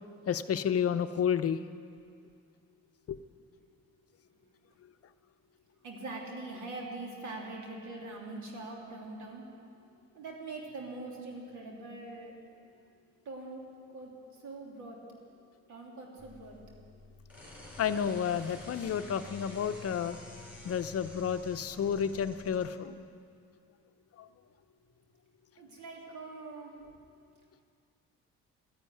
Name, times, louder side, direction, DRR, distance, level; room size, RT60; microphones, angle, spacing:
voice 1, 0.3-1.6 3.1-3.2 17.8-20.2 20.6-22.9 24.2-24.3, left 8 dB, 50° left, 10 dB, 0.7 m, -31 dB
voice 2, 5.8-9.4 10.1-12.3 13.2-13.6 13.9-14.1 14.4-15.0 15.7-16.6 25.6-26.7, right 2 dB, 75° right, -1 dB, 3.2 m, -43 dB
sound 1, 16.2-22.7, left 2 dB, 5° right, 4.4 m, -49 dB
13.0 x 10.5 x 9.7 m, 2.3 s
cardioid pair, 90°, 30 cm